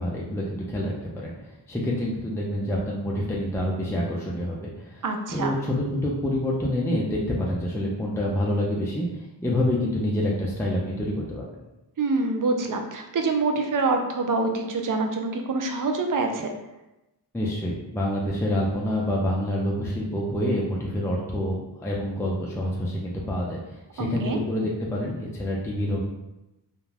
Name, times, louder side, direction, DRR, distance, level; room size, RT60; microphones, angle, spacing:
voice 1, 0.0-5.0 5.3-11.6 17.3-26.0, left 1 dB, 5° left, -4 dB, 0.4 m, -27 dB
voice 2, 5.0-5.5 12.0-16.5 24.0-24.4, right 3 dB, 50° right, 4 dB, 0.5 m, -26 dB
2.4 x 2.2 x 3.2 m, 0.96 s
wide cardioid pair, 60°, 41 cm